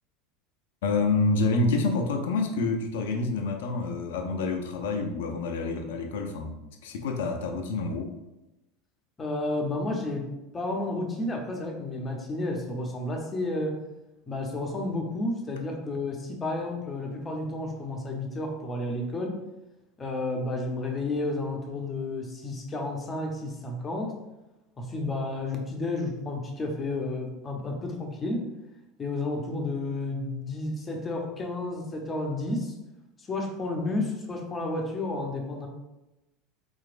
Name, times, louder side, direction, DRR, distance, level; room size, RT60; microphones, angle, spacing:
voice 1, 0.8-6.5 6.8-8.1, left 3 dB, 75° left, 4 dB, 0.5 m, -27 dB
voice 2, 9.2-10.2 10.5-13.8 14.3-19.4 20.0-24.1 24.8-28.5 29.0-32.7 33.3-35.7, left 2 dB, 25° left, 1 dB, 0.8 m, -31 dB
4.0 x 3.1 x 2.5 m, 0.97 s
hypercardioid pair, 85°, 0 cm